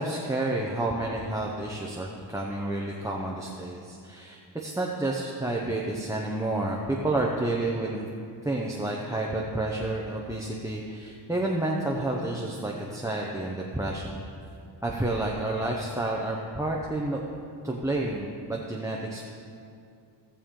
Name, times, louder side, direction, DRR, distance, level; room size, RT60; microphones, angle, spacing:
voice 1, 0.0-8.1 8.4-14.2 14.8-17.2 17.6-19.3, right 2 dB, 5° right, -2 dB, 0.7 m, -30 dB
16.5 x 7.0 x 3.7 m, 2.5 s
wide cardioid pair, 130°, 45 cm